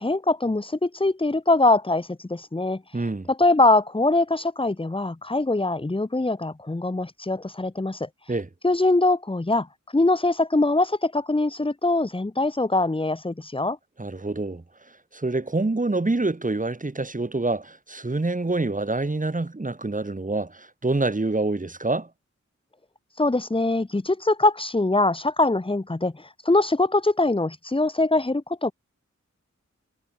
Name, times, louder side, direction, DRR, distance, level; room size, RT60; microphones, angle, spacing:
voice 1, 0.0-8.3 8.6-9.7 9.9-13.8 23.1-28.7, left 2 dB, 20° left, 0.9 m, -23 dB
voice 2, 2.9-3.3 8.3-8.5 14.0-14.6 15.1-22.1, right 2 dB, 30° right, 1.5 m, -26 dB
wide cardioid pair, 60°, 29 cm